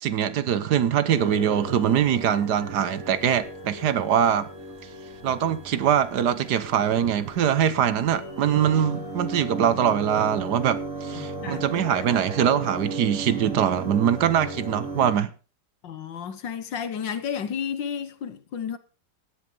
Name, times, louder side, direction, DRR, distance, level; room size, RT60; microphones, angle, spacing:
voice 1, 0.0-4.5 5.2-15.3, right 9 dB, 65° right, 1.4 m, -23 dB
sound 1, 1.1-15.1, right 2 dB, 45° right, 3.6 m, -36 dB
voice 2, 11.1-12.1 15.8-18.8, left 7 dB, 75° left, 1.9 m, -32 dB
16.5 x 11.0 x 3.9 m
omnidirectional pair, 2.0 m